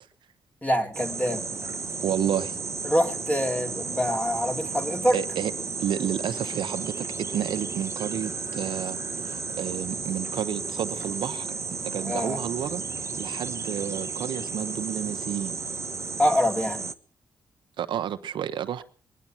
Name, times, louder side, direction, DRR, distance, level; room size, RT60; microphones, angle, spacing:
voice 1, 0.6-1.4 2.8-5.2 12.0-12.4 16.2-16.9, equal, 15° left, 2.6 m, -25 dB
sound 1, 0.9-16.9, right 4 dB, 35° right, 1.0 m, -33 dB
voice 2, 2.0-2.6 5.1-5.5 5.8-11.5 11.8-12.8 13.2-15.5 17.8-18.8, right 9 dB, 80° right, 0.9 m, -30 dB
22.0 x 10.0 x 5.9 m
cardioid pair, 65°, 8 cm